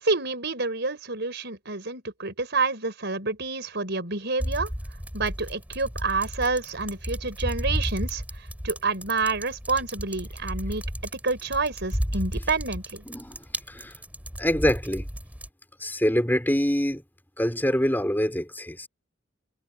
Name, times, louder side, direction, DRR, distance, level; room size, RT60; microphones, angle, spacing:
voice 1, 0.0-4.7 5.1-8.2 8.6-10.8 11.1-13.0, right 3 dB, 55° right, 6.1 m, -28 dB
sound 1, 4.4-15.5, equal, 10° right, 6.2 m, -33 dB
voice 2, 13.1-13.9 14.4-15.1 15.8-17.0 17.4-18.9, equal, 10° left, 5.8 m, -25 dB
head